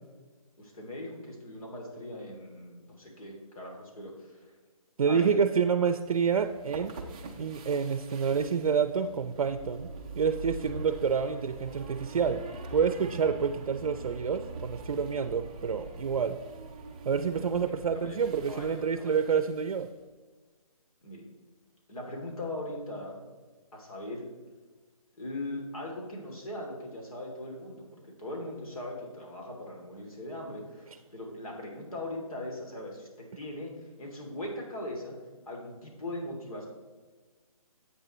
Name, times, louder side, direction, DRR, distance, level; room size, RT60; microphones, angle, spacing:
voice 1, 0.6-4.5 5.1-5.3 17.4-18.2 18.5-19.1 21.0-21.2 21.9-23.2 23.7-24.3 25.2-30.9 31.1-35.2 35.5-36.7, left 1 dB, 70° left, 0 dB, 2.7 m, -40 dB
voice 2, 5.0-6.9 7.4-9.9 10.2-12.4 12.7-16.4 17.1-19.9, right 6 dB, 70° right, 10 dB, 0.5 m, -28 dB
sound 1, 6.0-19.9, right 3 dB, 15° right, 0.4 m, -44 dB
9.4 x 8.1 x 3.0 m, 1.4 s
hypercardioid pair, 160°, 19 cm